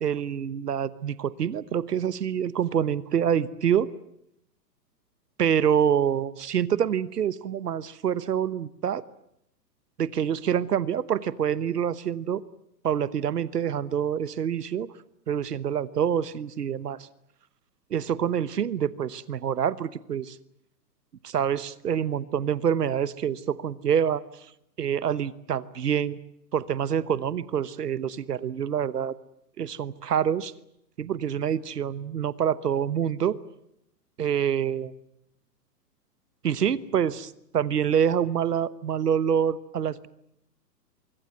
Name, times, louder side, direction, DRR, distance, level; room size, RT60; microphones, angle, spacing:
voice 1, 0.0-3.9 5.4-9.0 10.0-12.4 12.8-14.9 15.3-17.1 17.9-20.4 21.2-24.2 24.8-26.2 26.5-29.2 29.6-30.5 31.0-33.4 34.2-34.9 36.4-40.1, right 8 dB, 65° right, 18 dB, 1.2 m, -26 dB
24.0 x 24.0 x 7.8 m, 0.75 s
figure-of-eight pair, 115°, 50 cm